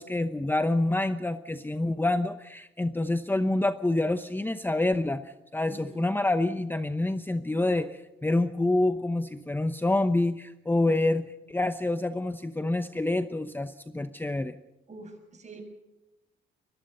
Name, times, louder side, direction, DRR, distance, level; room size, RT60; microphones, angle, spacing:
voice 1, 0.0-14.6, left 2 dB, 10° left, 10 dB, 0.9 m, -27 dB
voice 2, 5.7-6.1 10.8-11.1 14.9-15.6, right 3 dB, 35° right, 4 dB, 7.3 m, -46 dB
23.5 x 22.0 x 5.4 m, 0.97 s
cardioid pair, 90°, 20 cm